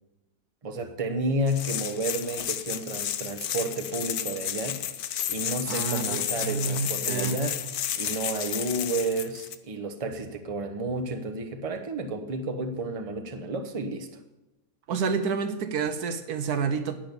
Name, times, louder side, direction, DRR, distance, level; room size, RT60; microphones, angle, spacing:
voice 1, 0.6-4.9 5.3-7.6 8.0-14.1, right 2 dB, 25° right, 6 dB, 1.0 m, -31 dB
sound 1, 1.5-9.6, left 10 dB, 75° left, 1.2 m, -32 dB
voice 2, 5.7-7.5 14.9-17.0, right 5 dB, 80° right, 9 dB, 1.5 m, -29 dB
10.5 x 9.2 x 7.0 m, 1.0 s
omnidirectional pair, 1.6 m